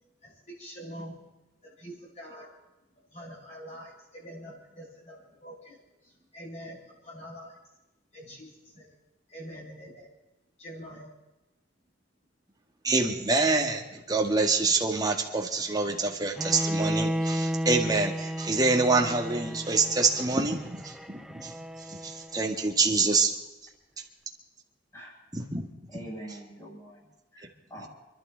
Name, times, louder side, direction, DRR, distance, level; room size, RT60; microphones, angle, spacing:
voice 1, 0.2-1.2 1.6-2.5 3.1-7.6 8.1-9.0 9.3-10.1 10.6-11.1, equal, 40° left, -5 dB, 5.9 m, -45 dB
voice 2, 12.8-21.5 21.9-23.3 25.3-25.7, right 3 dB, 20° right, 2 dB, 1.7 m, -26 dB
Bowed string instrument, 16.4-22.4, equal, ahead, 0.5 m, -33 dB
voice 3, 25.9-27.9, right 1 dB, 20° left, -4 dB, 6.2 m, -44 dB
28.5 x 11.5 x 4.0 m, 1.0 s
head